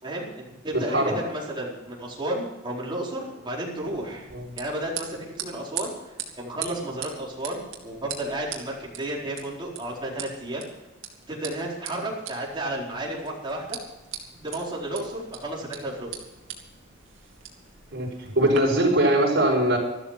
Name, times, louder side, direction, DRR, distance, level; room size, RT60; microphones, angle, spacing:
voice 1, 0.0-4.3 4.6-10.7 11.3-13.8 14.4-16.2, right 1 dB, 25° right, -3 dB, 4.5 m, -32 dB
voice 2, 0.7-1.2 4.3-4.6 17.9-19.8, right 1 dB, 60° right, -2 dB, 5.7 m, -22 dB
sound 1, 3.8-18.6, right 8 dB, 80° right, 2.6 m, -41 dB
14.0 x 13.0 x 5.9 m, 1.0 s
head